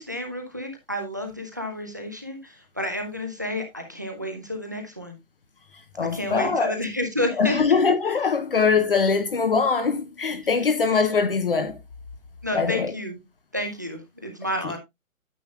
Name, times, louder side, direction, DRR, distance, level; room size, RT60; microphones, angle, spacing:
voice 1, 0.0-5.2 6.1-7.5 12.4-13.2 13.5-14.8, left 1 dB, 15° right, 0.6 m, -30 dB
voice 2, 5.9-6.8 7.4-11.8 12.5-12.9 14.6-14.7, left 5 dB, 40° left, 0.8 m, -22 dB
9.2 x 8.9 x 2.3 m
hypercardioid pair, 165°, 42 cm